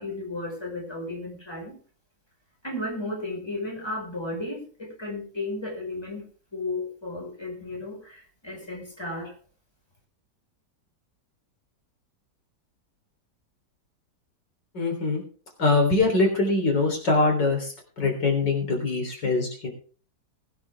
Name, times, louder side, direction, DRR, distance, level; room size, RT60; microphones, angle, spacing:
voice 1, 0.0-1.8 2.6-9.3, left 2 dB, 15° left, 0 dB, 5.2 m, -34 dB
voice 2, 14.7-15.2 15.6-19.7, left 3 dB, 75° left, 2 dB, 4.3 m, -23 dB
20.5 x 9.4 x 3.5 m, 0.39 s
omnidirectional pair, 1.9 m